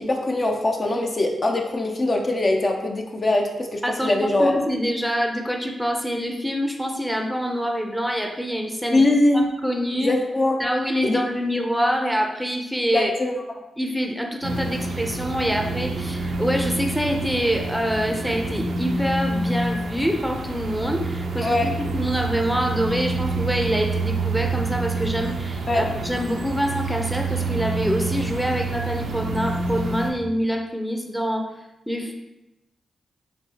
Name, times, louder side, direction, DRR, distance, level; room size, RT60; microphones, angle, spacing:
voice 1, 0.0-4.6 8.9-9.4 10.0-10.6 11.0-11.2 12.9-13.3 21.4-21.7 25.7-25.9, left 2 dB, 40° left, 1 dB, 0.6 m, -22 dB
voice 2, 3.8-9.0 9.3-10.1 10.6-13.1 13.8-31.5 31.9-32.1, equal, ahead, 3 dB, 0.6 m, -25 dB
sound 1, 14.4-30.1, right 3 dB, 85° right, 0.5 m, -27 dB
4.4 x 3.1 x 2.8 m, 0.96 s
cardioid pair, 50°, 0 cm